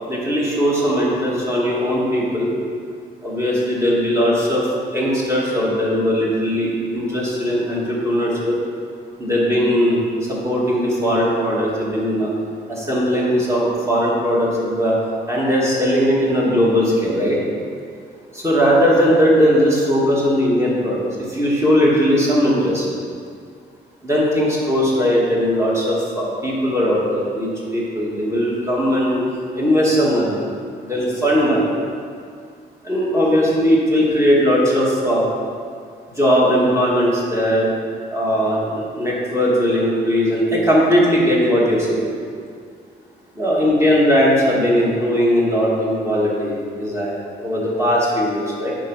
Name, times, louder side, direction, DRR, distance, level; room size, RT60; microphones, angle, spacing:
voice 1, 0.1-2.5 3.2-4.7 4.9-8.6 9.2-10.0 10.3-12.3 12.7-15.0 15.3-17.4 18.3-22.8 24.0-29.2 29.5-30.4 30.8-31.7 32.8-35.2 36.2-37.7 38.1-42.1 43.4-48.7, equal, 15° right, -5 dB, 2.3 m, -18 dB
8.4 x 5.3 x 5.8 m, 2.2 s
cardioid pair, 115°, 18 cm